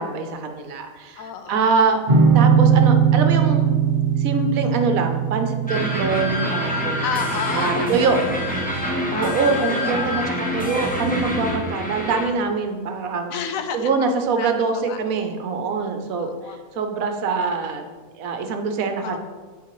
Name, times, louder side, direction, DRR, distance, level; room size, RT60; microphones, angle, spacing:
voice 1, 0.0-2.0 2.3-3.7 4.2-7.0 7.5-8.2 9.1-13.3 13.7-17.9 18.2-19.2, right 4 dB, 75° right, 5 dB, 1.1 m, -24 dB
voice 2, 1.2-2.0 7.0-8.2 9.1-9.7 13.3-13.9 14.4-14.5 14.7-15.0 16.2-16.6 19.0-19.2, left 7 dB, 75° left, 8 dB, 1.0 m, -31 dB
sound 1, 2.1-9.3, right 7 dB, 45° right, 0.8 m, -20 dB
sound 2, 5.7-12.3, left 1 dB, 10° left, 0.7 m, -26 dB
8.4 x 4.6 x 3.0 m, 1.4 s
omnidirectional pair, 1.5 m